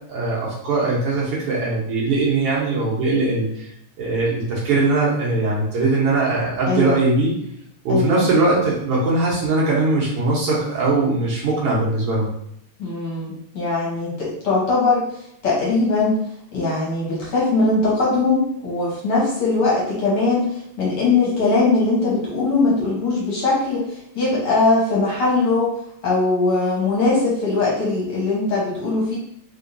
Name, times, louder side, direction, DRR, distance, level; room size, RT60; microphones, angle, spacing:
voice 1, 0.1-3.7 4.0-7.3 7.9-12.3, right 3 dB, 60° right, -5 dB, 1.7 m, -20 dB
voice 2, 6.7-7.0 7.9-8.2 12.8-15.0 15.4-16.2 16.5-25.7 26.0-29.2, left 3 dB, 60° left, -5 dB, 1.8 m, -20 dB
4.4 x 3.6 x 2.7 m, 0.73 s
omnidirectional pair, 3.3 m